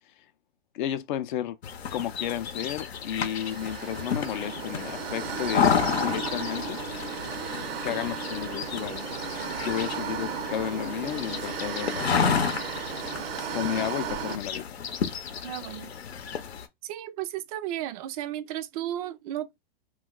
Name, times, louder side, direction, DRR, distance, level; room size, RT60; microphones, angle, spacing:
voice 1, 0.7-1.6 1.9-6.8 7.8-9.1 9.3-12.5 13.5-14.8, left 11 dB, 50° left, 0.5 m, -33 dB
sound 1, 1.6-16.7, left 7 dB, 90° left, 0.7 m, -31 dB
sound 2, 3.1-14.4, right 7 dB, 70° right, 0.7 m, -35 dB
voice 2, 15.4-15.9 16.8-19.5, right 12 dB, 40° right, 0.4 m, -34 dB
2.3 x 2.2 x 3.6 m
hypercardioid pair, 125°, 31 cm